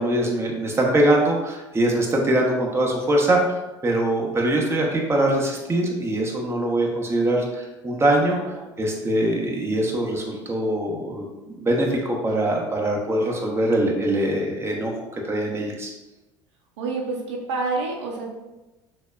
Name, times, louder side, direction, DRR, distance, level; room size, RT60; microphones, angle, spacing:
voice 1, 0.0-3.6 3.8-11.2 11.6-14.9 15.3-15.9, right 1 dB, 15° right, -1 dB, 0.9 m, -22 dB
voice 2, 8.2-8.7 16.8-18.2, right 3 dB, 70° right, 0 dB, 0.7 m, -29 dB
6.2 x 2.1 x 2.3 m, 1.1 s
hypercardioid pair, 70°, 15 cm